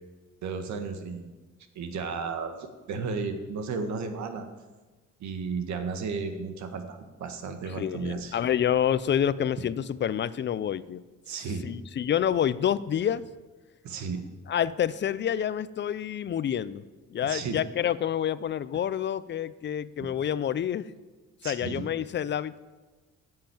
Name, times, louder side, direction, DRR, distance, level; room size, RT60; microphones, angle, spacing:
voice 1, 0.4-1.3 1.8-4.5 5.2-8.4 11.3-11.7 13.8-14.2 17.2-17.6 20.0-20.1 21.4-21.8, right 5 dB, 70° right, 7 dB, 1.7 m, -34 dB
voice 2, 7.8-11.0 11.6-13.2 14.5-16.8 17.1-20.9 21.4-22.6, left 9 dB, 40° left, 16 dB, 0.5 m, -28 dB
10.0 x 7.6 x 9.1 m, 1.3 s
cardioid pair, 110°, 29 cm